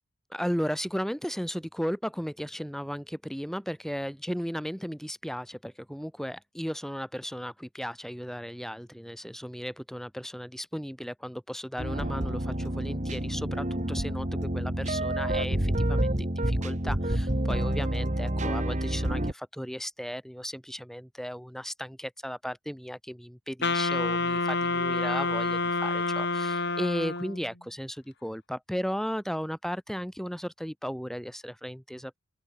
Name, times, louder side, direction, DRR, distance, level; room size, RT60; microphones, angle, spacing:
voice 1, 0.3-32.2, equal, ahead, 5.4 m, -35 dB
sound 1, 11.8-19.3, right 1 dB, 30° right, 2.3 m, -28 dB
Wind instrument woodwind instrument, 23.6-27.5, left 3 dB, 50° left, 5.6 m, -28 dB
open air
head